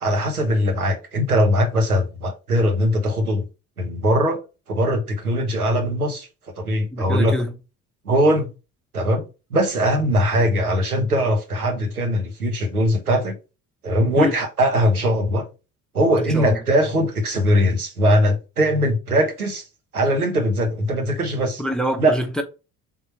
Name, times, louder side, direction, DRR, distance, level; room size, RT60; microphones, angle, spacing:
voice 1, 0.0-3.5 3.8-4.4 4.7-6.3 6.6-7.4 8.0-8.5 8.9-9.2 9.5-13.4 13.8-15.5 15.9-19.6 19.9-21.6 22.0-22.2, equal, 85° right, 0.9 m, -20 dB
voice 2, 6.9-7.5 14.2-14.4 16.3-16.6 21.6-22.4, equal, ahead, 0.7 m, -25 dB
3.7 x 2.7 x 4.3 m
figure-of-eight pair, 55°, 44 cm